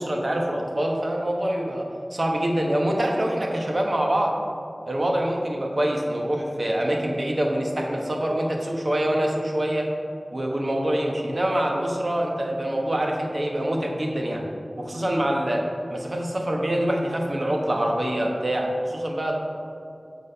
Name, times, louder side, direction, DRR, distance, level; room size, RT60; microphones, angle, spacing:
voice 1, 0.0-4.4 4.9-9.9 10.3-14.5 14.8-19.3, right 1 dB, 55° right, 0 dB, 1.0 m, -25 dB
7.5 x 4.1 x 5.4 m, 2.5 s
wide cardioid pair, 55°, 0 cm